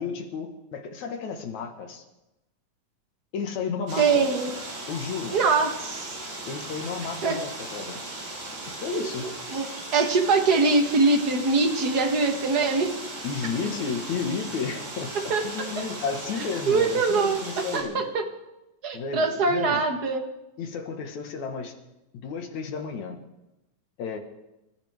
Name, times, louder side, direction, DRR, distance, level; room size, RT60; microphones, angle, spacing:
voice 1, 0.0-2.0 3.3-4.3 4.9-5.4 6.5-8.0 8.7-9.3 13.2-18.0 18.9-19.8 20.6-21.7 22.2-23.2 24.0-24.2, left 5 dB, 70° left, 4 dB, 2.9 m, -32 dB
sound 1, 3.9-17.8, right 2 dB, 60° right, 5.5 m, -37 dB
voice 2, 4.0-4.5 5.3-6.1 7.2-7.4 8.9-9.6 9.9-12.9 15.3-15.4 16.7-17.4 17.7-18.2 18.8-20.2, right 4 dB, 45° right, 5 dB, 1.4 m, -23 dB
28.0 x 14.0 x 3.6 m, 0.96 s
omnidirectional pair, 3.5 m